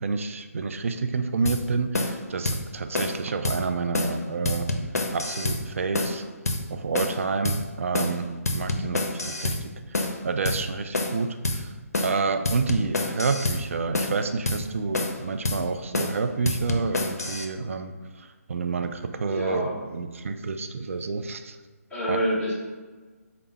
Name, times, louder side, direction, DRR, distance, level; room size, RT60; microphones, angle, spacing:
voice 1, 0.0-4.7 5.1-6.2 6.7-9.7 10.2-11.7 12.0-21.6 22.1-22.2, right 4 dB, 55° right, 7 dB, 0.4 m, -29 dB
sound 1, 1.5-1.6 1.9-2.2 2.5-2.6 2.9-3.2 3.4-3.6 3.9-4.2 4.5-5.6 5.9-6.2 6.5-6.6 6.9-7.2 7.5-7.6 7.9-8.2 8.5-9.6 9.9-10.2 10.5-10.6 10.9-11.2 11.4-11.6 11.9-12.2 12.5-13.6 13.9-14.2 14.5-14.6 14.9-15.2 15.5-15.6 15.9-16.2 16.5-17.5, left 2 dB, 75° left, 0.6 m, -27 dB
voice 2, 8.6-9.0 19.3-19.7 21.9-22.5, equal, 10° left, -11 dB, 1.4 m, -28 dB
5.0 x 2.2 x 4.0 m, 1.3 s
figure-of-eight pair, 145°, 8 cm